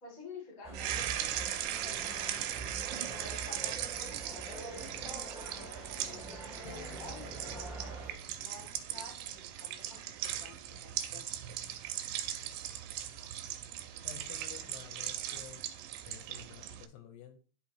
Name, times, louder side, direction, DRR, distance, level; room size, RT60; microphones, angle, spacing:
voice 1, 0.0-1.4 2.9-7.7 8.4-10.1 10.4-11.2, left 3 dB, 25° left, -1 dB, 2.2 m, -50 dB
sound 1, 0.6-8.1, right 3 dB, ahead, 1.2 m, -45 dB
sound 2, 0.7-16.9, right 11 dB, 85° right, 2.9 m, -39 dB
Acoustic guitar, 6.6-10.6, left 6 dB, 60° left, 2.4 m, -57 dB
voice 2, 14.0-15.6 16.0-17.4, left 10 dB, 75° left, 6 dB, 2.9 m, -51 dB
10.5 x 5.2 x 3.0 m, 0.37 s
omnidirectional pair, 5.2 m